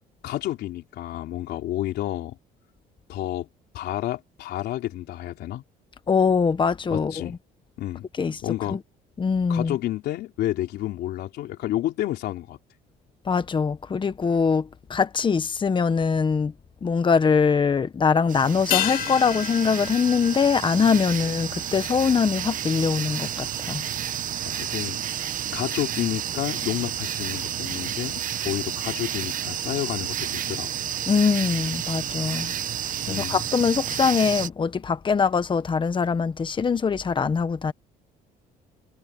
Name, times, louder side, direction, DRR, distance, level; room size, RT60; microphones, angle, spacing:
voice 1, 0.2-2.4 3.1-3.5 3.7-5.6 6.9-7.4 7.8-8.1 8.4-8.8 9.5-12.6 24.4-25.1 25.5-30.7 33.1-33.4, left 14 dB, 75° left, 3.6 m, -30 dB
voice 2, 6.1-7.3 8.2-8.4 8.7-8.8 9.2-9.8 13.2-16.5 16.8-23.8 31.1-32.5 33.1-37.7, left 5 dB, 30° left, 1.4 m, -23 dB
sound 1, 18.3-34.5, right 10 dB, 50° right, 1.4 m, -31 dB
sound 2, 18.7-23.4 23.7-23.8, left 11 dB, 60° left, 3.1 m, -32 dB
cardioid pair, 110°, 17 cm